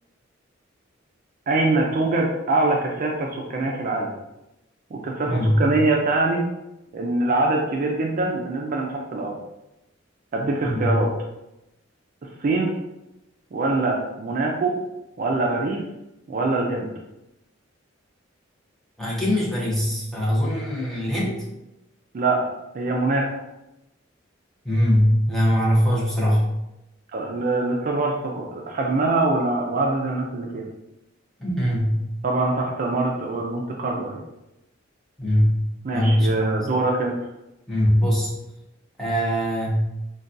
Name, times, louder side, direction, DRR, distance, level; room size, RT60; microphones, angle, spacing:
voice 1, 1.5-4.1 4.9-6.5 6.9-9.4 10.3-11.1 12.2-12.7 13.5-14.7 15.2-15.8 16.3-16.9 22.1-22.4 22.7-23.4 27.1-30.6 32.2-34.2 35.8-37.2, right 2 dB, 45° right, 0 dB, 0.4 m, -23 dB
voice 2, 5.3-5.6 10.6-10.9 19.0-21.4 24.6-26.5 31.4-32.0 35.2-35.5 35.9-36.5 37.7-38.3 39.0-39.8, equal, ahead, -6 dB, 0.7 m, -21 dB
3.9 x 2.2 x 2.5 m, 0.91 s
head